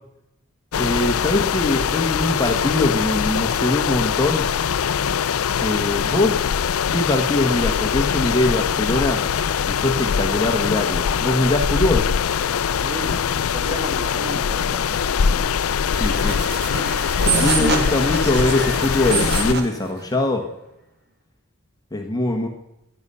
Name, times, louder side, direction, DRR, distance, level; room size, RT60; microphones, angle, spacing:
sound 1, 0.7-19.5, left 7 dB, 75° left, 0.4 m, -22 dB
voice 1, 0.8-4.5 5.6-6.5 6.9-9.2 9.7-12.1 16.0-16.4 17.4-20.4 21.9-22.5, left 2 dB, 15° left, 2 dB, 1.1 m, -22 dB
voice 2, 12.8-15.5 17.2-17.8, right 1 dB, 15° right, 4 dB, 1.8 m, -35 dB
sound 2, 15.9-19.8, right 4 dB, 50° right, 2.0 m, -25 dB
14.5 x 9.9 x 5.5 m, 0.90 s
head